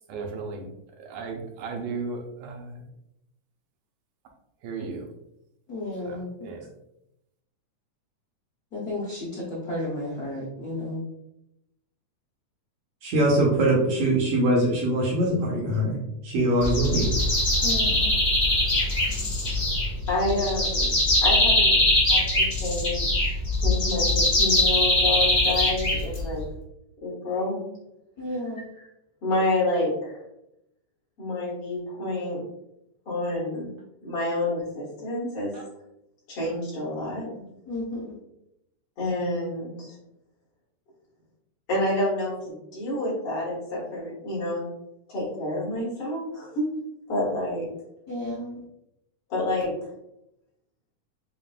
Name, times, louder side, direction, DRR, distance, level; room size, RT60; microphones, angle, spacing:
voice 1, 0.1-0.6 1.0-2.8 4.6-5.1 6.1-6.2 6.4-6.6, right 4 dB, 85° right, 1 dB, 2.2 m, -35 dB
voice 2, 5.7-6.5 8.7-11.0 17.6-18.1 28.2-28.7 37.7-38.1 48.1-48.6, left 1 dB, 80° left, -7 dB, 0.8 m, -33 dB
voice 3, 13.0-16.0 16.2-17.1, right 1 dB, 65° right, -3 dB, 1.7 m, -22 dB
sound 1, 16.6-26.4, left 1 dB, 30° left, 1.5 m, -22 dB
voice 4, 20.1-20.9 21.2-21.8 22.1-23.1 23.6-26.4 27.0-27.6 28.8-28.9 29.2-30.2 31.2-32.4 33.1-33.7 34.0-35.5 36.3-37.3 39.0-40.0 41.7-44.6 45.1-46.7 47.1-47.7 49.3-49.9, left 1 dB, 50° left, -6 dB, 2.3 m, -28 dB
7.1 x 2.5 x 2.3 m, 0.83 s
omnidirectional pair, 3.4 m